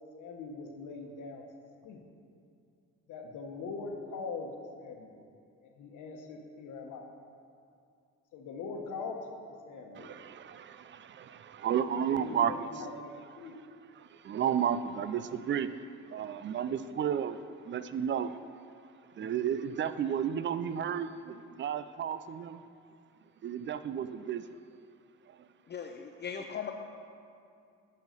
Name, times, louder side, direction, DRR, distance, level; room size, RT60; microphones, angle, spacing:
voice 1, 0.2-1.4 1.8-2.0 3.1-4.5 4.8-5.2 5.6-7.1 8.3-9.2 9.5-10.1 11.9-13.6, left 4 dB, 80° left, 1.1 m, -42 dB
voice 2, 9.9-12.6 14.0-15.8 16.1-17.4 17.7-18.3 19.2-22.6 23.4-24.4, right 8 dB, 40° right, 0.4 m, -32 dB
voice 3, 25.7-26.7, left 7 dB, 35° left, 0.5 m, -38 dB
9.2 x 5.7 x 5.2 m
cardioid pair, 90°, 30 cm